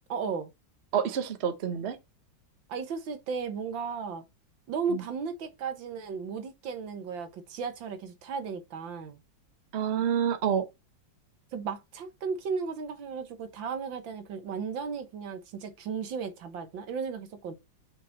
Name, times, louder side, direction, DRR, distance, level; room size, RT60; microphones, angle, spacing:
voice 1, 0.1-0.5 2.7-4.2 4.7-9.2 11.5-17.5, right 5 dB, 70° right, 1.9 m, -35 dB
voice 2, 0.9-2.0 4.9-5.0 9.7-10.7, right 8 dB, 45° right, 0.9 m, -28 dB
5.9 x 5.7 x 4.0 m
omnidirectional pair, 2.2 m